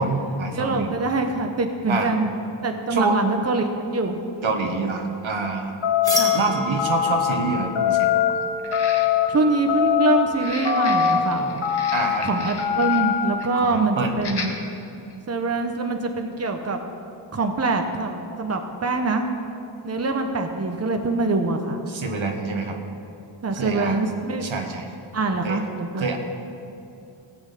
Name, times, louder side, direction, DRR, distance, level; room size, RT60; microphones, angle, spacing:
voice 1, 0.0-0.9 1.9-2.1 2.9-3.2 4.4-5.7 6.3-8.4 11.9-12.3 13.5-14.2 21.9-22.8 23.5-24.0 24.4-24.9 25.4-25.6 25.9-26.2, right 3 dB, 75° right, 3 dB, 1.5 m, -26 dB
voice 2, 0.5-2.3 2.6-4.2 6.2-6.4 9.3-11.6 12.2-14.5 15.3-16.8 17.3-19.3 19.8-21.8 23.4-24.4 25.1-26.2, right 3 dB, 30° right, 4 dB, 1.0 m, -24 dB
sound 1, 3.9-4.0 5.0-5.1 5.5-5.6 8.6-9.4 10.3-13.1 13.4-13.6 14.2-14.5 15.1-15.2, left 3 dB, 55° left, 1.5 m, -36 dB
sound 2, 5.8-6.4 6.8-7.3 7.8-8.3 8.7-9.3 9.7-10.2 10.7-11.2 11.6-12.2 12.6-13.1, left 9 dB, 75° left, 1.9 m, -21 dB
sound 3, 6.0-11.6, equal, 10° left, 2.9 m, -34 dB
16.0 x 6.2 x 8.4 m, 2.6 s
wide cardioid pair, 100°, 47 cm